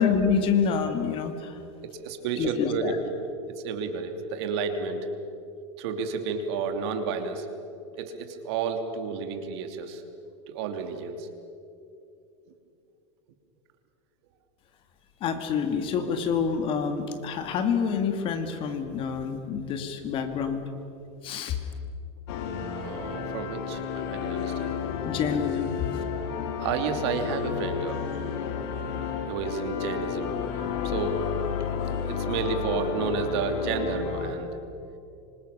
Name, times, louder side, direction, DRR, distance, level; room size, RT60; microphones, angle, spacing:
voice 1, 0.0-1.6 2.4-3.0 15.2-20.7 21.2-21.6 25.0-26.0, left 6 dB, 35° left, 7 dB, 2.5 m, -27 dB
voice 2, 1.9-2.9 3.6-5.1 5.8-7.5 7.9-10.0 10.5-11.3 22.7-24.7 26.6-28.0 29.0-30.3 30.8-31.3 32.0-34.5, right 5 dB, 65° right, 6 dB, 3.2 m, -31 dB
sound 1, 22.3-34.3, left 7 dB, 60° left, 3.2 m, -31 dB
26.0 x 26.0 x 6.9 m, 2.6 s
supercardioid pair, 145°, 15 cm